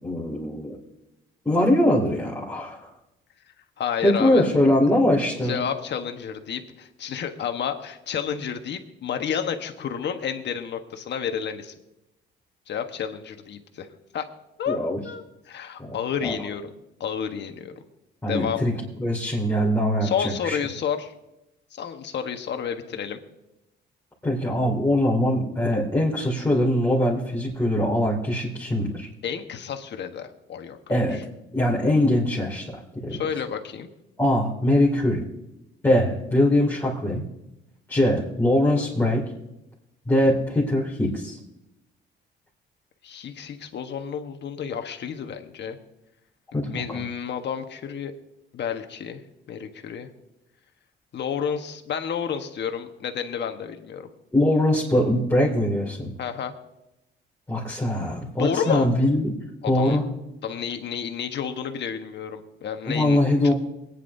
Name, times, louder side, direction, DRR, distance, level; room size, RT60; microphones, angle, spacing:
voice 1, 0.0-0.8 1.4-2.9 4.0-5.6 14.7-15.0 15.9-16.0 16.2-16.3 18.2-20.6 24.2-29.1 30.9-31.2 31.5-33.2 34.2-35.2 35.8-37.3 37.9-39.2 40.1-41.4 46.5-47.0 54.3-56.1 57.5-59.3 59.7-60.0 62.9-63.5, left 1 dB, 10° left, -5 dB, 2.6 m, -22 dB
voice 2, 3.8-4.5 5.4-11.7 12.7-13.9 14.1-14.2 14.6-16.6 17.0-17.7 18.3-18.6 20.0-21.1 21.7-23.2 29.2-30.8 33.1-33.9 43.0-45.8 46.5-48.1 48.5-49.2 49.5-50.1 51.1-54.0 56.2-56.5 58.4-58.9 59.7-60.0 60.4-63.2, left 7 dB, 60° left, 6 dB, 1.3 m, -30 dB
24.0 x 9.8 x 2.7 m, 0.92 s
cardioid pair, 90°, 20 cm